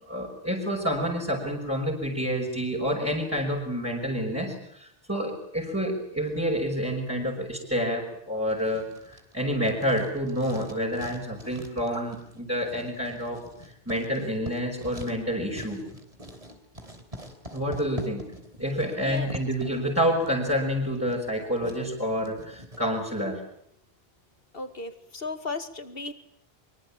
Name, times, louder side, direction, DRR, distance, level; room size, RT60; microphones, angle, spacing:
voice 1, 0.0-15.8 17.5-18.3 18.6-23.4, equal, 15° right, -4 dB, 5.9 m, -28 dB
Writing, 8.5-22.8, equal, 35° right, 4.0 m, -44 dB
voice 2, 19.0-19.4 24.5-26.1, left 3 dB, 65° left, 11 dB, 2.4 m, -35 dB
24.5 x 24.0 x 8.8 m, 0.69 s
omnidirectional pair, 1.0 m